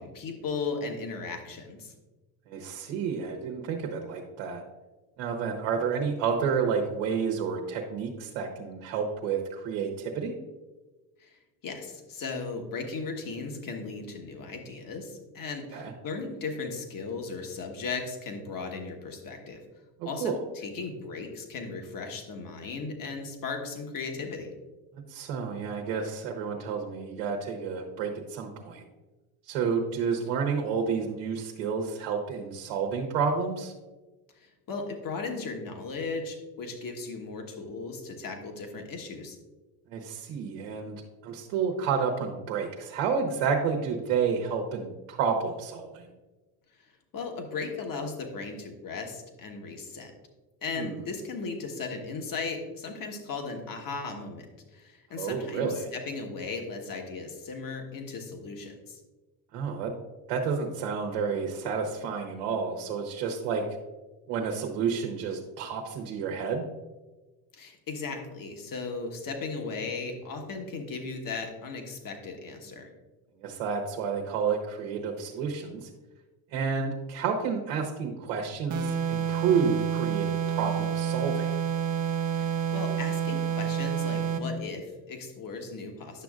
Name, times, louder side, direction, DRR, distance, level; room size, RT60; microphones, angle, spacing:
voice 1, 0.0-1.9 11.2-19.6 20.0-24.5 34.4-39.4 47.1-50.1 50.6-54.5 54.7-59.0 67.5-72.9 82.3-86.2, left 4 dB, 45° left, 4 dB, 1.3 m, -36 dB
voice 2, 2.5-4.6 5.2-10.3 15.7-15.9 20.0-20.4 25.1-28.8 29.5-33.7 39.9-41.0 41.2-46.1 50.8-51.0 55.2-55.9 59.5-59.9 60.3-63.6 64.3-66.6 73.4-75.9 76.5-81.5, right 6 dB, 75° right, 2 dB, 1.1 m, -30 dB
sound 1, 78.7-84.5, right 8 dB, 40° right, 0.7 m, -29 dB
9.9 x 6.1 x 2.4 m, 1.2 s
supercardioid pair, 85°, 49 cm